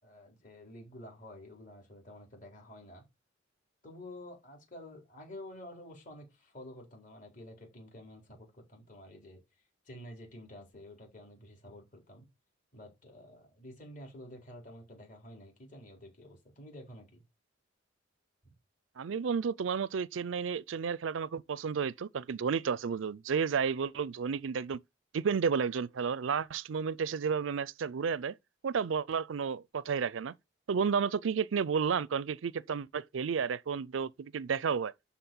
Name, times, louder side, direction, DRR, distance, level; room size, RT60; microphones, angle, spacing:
voice 1, 0.0-3.0 3.8-9.4 9.8-12.3 12.7-17.2 18.4-18.5, left 1 dB, 45° left, 4.4 m, -50 dB
voice 2, 19.0-24.8 25.1-28.4 28.6-30.3 30.7-34.9, right 6 dB, 85° right, 0.4 m, -32 dB
12.0 x 4.2 x 7.1 m
head